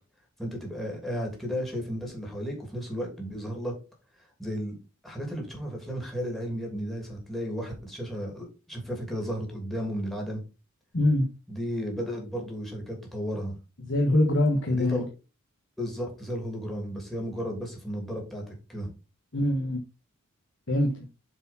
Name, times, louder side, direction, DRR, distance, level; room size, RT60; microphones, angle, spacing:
voice 1, 0.4-3.7 4.2-4.8 5.0-10.4 11.5-13.5 14.7-15.1 15.8-18.9, equal, ahead, 2.6 m, -34 dB
voice 2, 10.9-11.3 13.9-15.0 19.3-19.8 20.7-20.9, left 1 dB, 60° left, 1.4 m, -23 dB
7.6 x 4.7 x 4.3 m
head